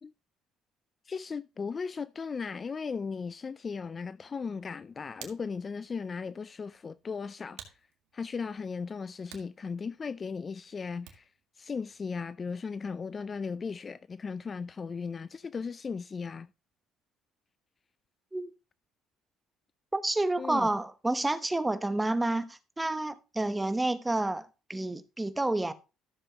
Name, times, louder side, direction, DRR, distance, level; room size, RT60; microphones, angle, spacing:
voice 1, 1.1-7.7 8.1-11.3 11.6-16.5 20.4-20.7, left 5 dB, 30° left, 0.4 m, -37 dB
Hands, 4.6-11.5, right 10 dB, 85° right, 1.8 m, -55 dB
voice 2, 19.9-25.7, right 2 dB, 10° right, 0.9 m, -29 dB
13.5 x 7.1 x 2.9 m
cardioid pair, 110°, 0 cm